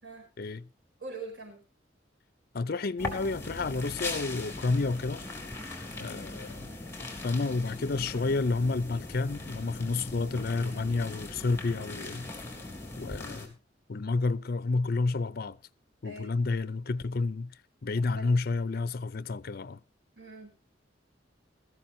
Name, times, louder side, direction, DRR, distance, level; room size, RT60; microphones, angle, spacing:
voice 1, 0.4-0.7 2.5-5.2 6.0-6.7 7.2-12.3 13.0-13.5 13.9-15.6 16.0-17.5 17.8-19.8, left 3 dB, 55° left, 0.6 m, -30 dB
voice 2, 1.0-1.6 16.0-16.3 17.9-18.3 20.1-20.5, right 3 dB, 75° right, 5.5 m, -43 dB
sound 1, 3.0-13.5, left 2 dB, 15° left, 3.6 m, -40 dB
19.5 x 14.0 x 2.7 m
head